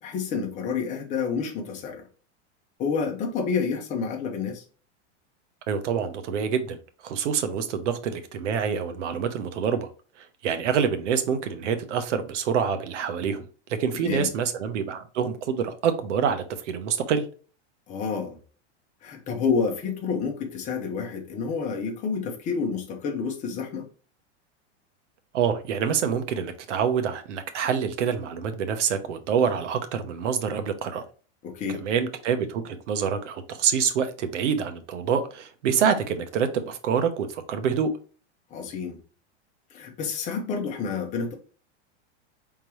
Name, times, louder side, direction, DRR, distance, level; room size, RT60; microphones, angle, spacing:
voice 1, 0.0-2.1 2.8-4.6 13.9-14.3 17.9-18.4 19.0-23.8 31.4-31.8 38.5-39.0 39.7-41.3, left 5 dB, 20° left, 0.9 m, -29 dB
voice 2, 5.7-6.8 7.0-9.9 10.2-13.4 13.7-17.2 25.3-31.0 31.7-37.9, right 7 dB, 85° right, 1.0 m, -26 dB
4.6 x 3.7 x 3.0 m
supercardioid pair, 165°, 35 cm